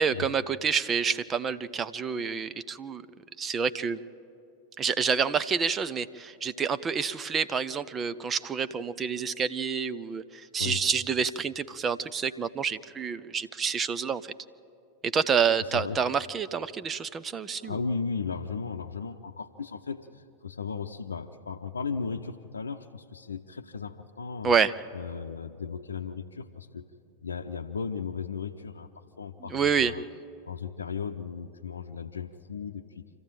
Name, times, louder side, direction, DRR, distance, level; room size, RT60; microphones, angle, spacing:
voice 1, 0.0-3.0 3.4-4.0 4.8-14.3 15.0-17.7 24.4-24.7 29.5-29.9, right 6 dB, 20° right, 14 dB, 0.7 m, -28 dB
voice 2, 17.6-24.6 24.9-26.9 27.2-30.0 30.5-33.0, left 5 dB, 75° left, 3 dB, 0.7 m, -36 dB
27.0 x 14.0 x 9.0 m, 2.6 s
figure-of-eight pair, 90°, 0 cm